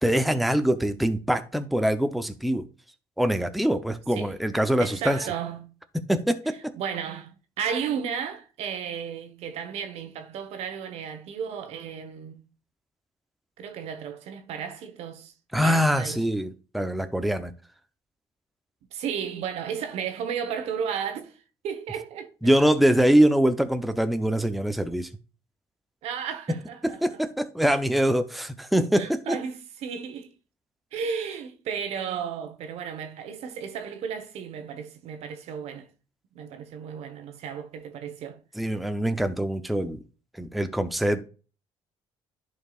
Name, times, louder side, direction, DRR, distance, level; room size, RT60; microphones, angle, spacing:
voice 1, 0.0-2.6 3.2-5.2 6.1-6.6 15.5-17.5 22.4-25.1 26.8-29.4 38.6-40.0 40.4-41.3, equal, ahead, 0.7 m, -23 dB
voice 2, 4.8-5.7 6.7-12.4 13.6-15.3 15.6-16.2 18.9-21.4 21.6-22.3 26.0-27.2 28.9-30.3 30.9-35.9 36.3-38.4, right 7 dB, 70° right, 1.2 m, -34 dB
11.0 x 4.7 x 2.4 m
supercardioid pair, 80°, 11 cm